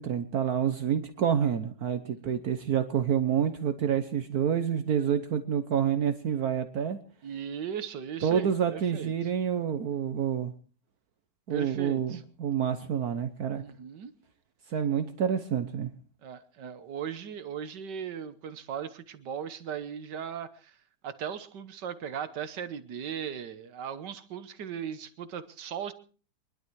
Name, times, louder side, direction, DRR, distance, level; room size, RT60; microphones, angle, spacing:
voice 1, 0.0-7.0 8.2-10.5 11.5-13.6 14.7-15.9, right 8 dB, 65° right, 9 dB, 1.4 m, -28 dB
voice 2, 2.0-2.4 7.2-9.1 11.5-12.2 13.5-14.1 16.2-20.8 21.0-25.9, right 8 dB, 85° right, 12 dB, 1.8 m, -38 dB
24.0 x 11.5 x 4.6 m, 0.39 s
omnidirectional pair, 1.8 m